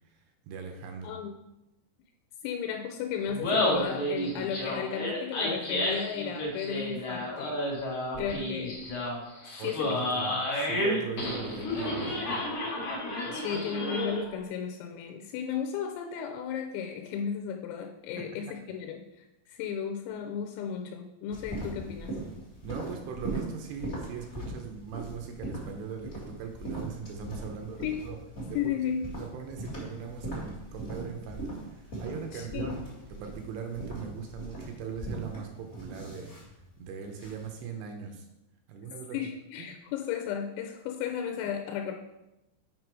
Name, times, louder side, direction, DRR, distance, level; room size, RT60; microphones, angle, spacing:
voice 1, 0.4-1.1 9.6-12.4 13.5-13.6 18.2-18.3 22.6-28.2 28.5-28.8 29.2-36.3 36.8-38.3 38.7-39.2 39.6-39.7, right 6 dB, 80° right, 3 dB, 2.7 m, -40 dB
voice 2, 1.0-1.3 2.4-7.6 8.2-8.9 9.5-10.3 13.3-19.1 19.5-22.2 27.5-28.0 28.5-29.1 32.3-32.8 39.1-41.9, left 8 dB, 90° left, 4 dB, 3.0 m, -34 dB
Laughter, 3.3-14.3, left 1 dB, 70° left, 1.2 m, -31 dB
sound 1, 21.3-37.6, right 2 dB, 50° left, 0.7 m, -40 dB
7.7 x 5.2 x 4.7 m, 0.93 s
omnidirectional pair, 5.4 m